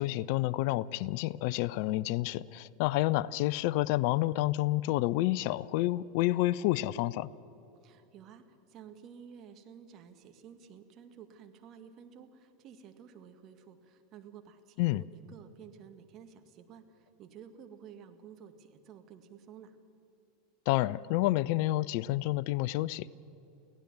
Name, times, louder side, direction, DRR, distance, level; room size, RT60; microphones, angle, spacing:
voice 1, 0.0-7.3 14.8-15.0 20.7-23.1, left 17 dB, 55° left, 21 dB, 0.4 m, -29 dB
voice 2, 7.8-19.8, right 8 dB, 40° right, 7 dB, 1.9 m, -52 dB
24.0 x 16.5 x 7.1 m, 2.9 s
hypercardioid pair, 85°, 0 cm